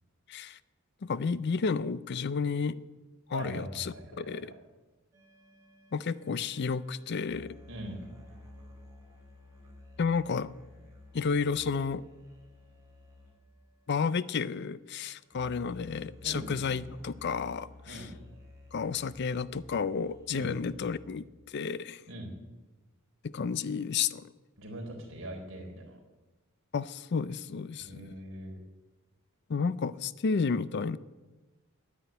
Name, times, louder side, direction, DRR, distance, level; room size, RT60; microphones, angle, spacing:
voice 1, 0.3-0.6 1.0-2.8 3.3-4.5 5.9-7.6 10.0-10.5 11.1-12.0 13.9-18.1 18.7-22.0 23.2-24.3 26.7-28.1 29.5-31.0, left 5 dB, 50° left, 17 dB, 0.5 m, -31 dB
voice 2, 3.3-4.6 7.7-8.1 16.2-16.8 17.9-18.1 20.3-20.5 22.1-22.3 24.6-26.0 27.8-28.6, right 1 dB, 65° right, 0 dB, 3.9 m, -41 dB
sound 1, 5.1-21.1, left 2 dB, 15° right, 4.0 m, -53 dB
9.9 x 9.8 x 9.3 m, 1.2 s
head